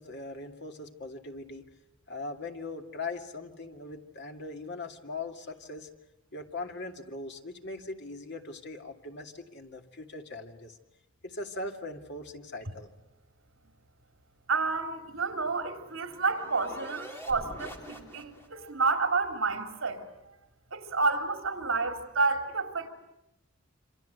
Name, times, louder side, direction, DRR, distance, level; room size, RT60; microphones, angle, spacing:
voice 1, 0.0-1.7 2.1-5.9 6.3-10.8 11.2-12.9, left 2 dB, 55° left, 2.4 m, -40 dB
voice 2, 14.5-20.0 20.7-22.9, right 4 dB, 70° right, 3.4 m, -30 dB
sound 1, 15.1-18.7, equal, 10° left, 3.3 m, -46 dB
27.5 x 26.0 x 8.1 m
head